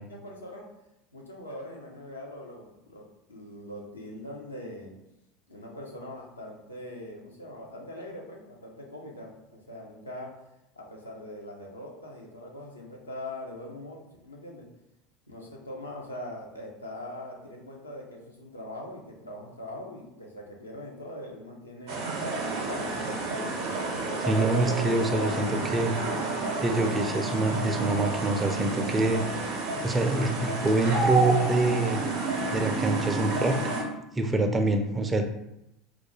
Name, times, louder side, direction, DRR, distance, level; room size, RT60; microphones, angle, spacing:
voice 1, 0.1-0.7 1.1-3.0 3.3-4.9 5.5-9.4 9.7-10.3 10.8-14.7 15.3-22.0 22.5-23.2, left 1 dB, 90° left, -1 dB, 0.5 m, -42 dB
sound 1, 21.9-33.8, right 3 dB, 65° right, 0.6 m, -30 dB
voice 2, 24.2-25.9 26.6-29.2 29.8-32.0 32.5-33.6 34.2-35.2, right 2 dB, 20° right, 6 dB, 0.3 m, -25 dB
2.3 x 2.2 x 3.0 m, 0.86 s
figure-of-eight pair, 75°, 0 cm